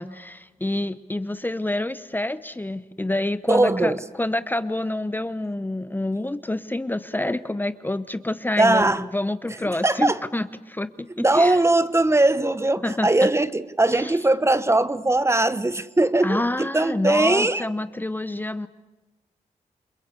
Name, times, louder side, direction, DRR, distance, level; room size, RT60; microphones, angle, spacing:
voice 1, 0.0-3.9 4.2-8.9 9.1-11.6 12.8-13.3 14.0-14.1 16.2-18.7, left 1 dB, 15° left, 13 dB, 0.9 m, -27 dB
voice 2, 3.5-4.0 8.6-9.0 9.7-10.2 11.2-17.6, right 2 dB, 20° right, 15 dB, 1.1 m, -20 dB
29.5 x 21.5 x 8.3 m, 1.1 s
cardioid pair, 80°, 14 cm